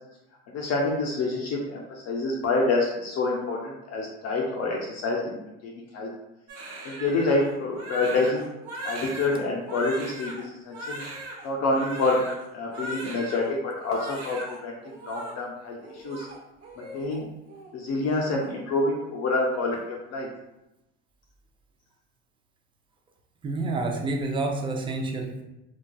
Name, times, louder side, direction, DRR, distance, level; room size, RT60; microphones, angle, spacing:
voice 1, 0.5-6.1 6.8-8.5 8.8-11.0 11.4-12.2 12.5-14.7 15.1-16.3 16.8-17.3 17.7-20.3, left 2 dB, 50° left, -2 dB, 0.5 m, -27 dB
Crying sobbing, 6.5-13.5 13.8-14.6 14.8-15.3 15.8-17.2 17.5-17.7 18.0-18.5, right 1 dB, 45° right, 0.9 m, -39 dB
voice 2, 23.4-25.4, right 2 dB, 15° right, 2 dB, 0.4 m, -28 dB
2.5 x 2.2 x 2.2 m, 0.93 s
supercardioid pair, 85°, 34 cm